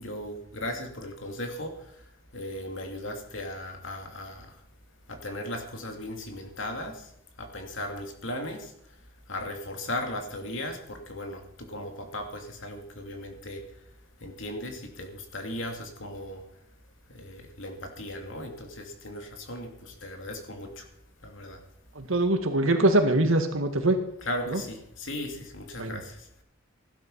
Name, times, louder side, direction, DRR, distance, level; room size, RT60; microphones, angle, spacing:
voice 1, 0.0-1.7 2.3-4.5 5.1-7.1 7.4-8.7 9.3-13.6 14.2-16.4 17.1-20.8 21.2-21.6 24.2-26.3, left 1 dB, 60° left, 3 dB, 3.0 m, -37 dB
voice 2, 22.0-24.0 24.5-24.6 25.8-26.0, right 1 dB, 70° right, 6 dB, 2.1 m, -23 dB
16.0 x 12.0 x 5.7 m, 0.72 s
head